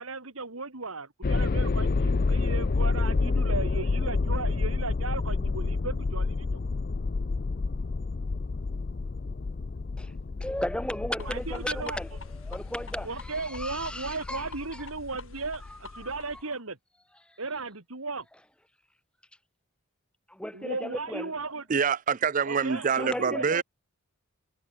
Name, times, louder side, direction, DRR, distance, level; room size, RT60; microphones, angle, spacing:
voice 1, 0.0-6.5 11.2-12.2 13.0-16.8 17.4-18.3 20.5-21.7 22.5-23.6, right 3 dB, 75° right, 2.5 m, -36 dB
sound 1, 1.2-16.3, left 3 dB, 45° left, 0.5 m, -29 dB
voice 2, 10.4-12.1 12.5-14.5 15.7-15.8 17.3-17.4 20.3-21.3 22.9-23.5, left 1 dB, 5° left, 2.4 m, -35 dB
sound 2, 11.2-16.5, left 4 dB, 65° left, 6.6 m, -50 dB
voice 3, 21.7-23.6, right 6 dB, 35° right, 0.4 m, -26 dB
head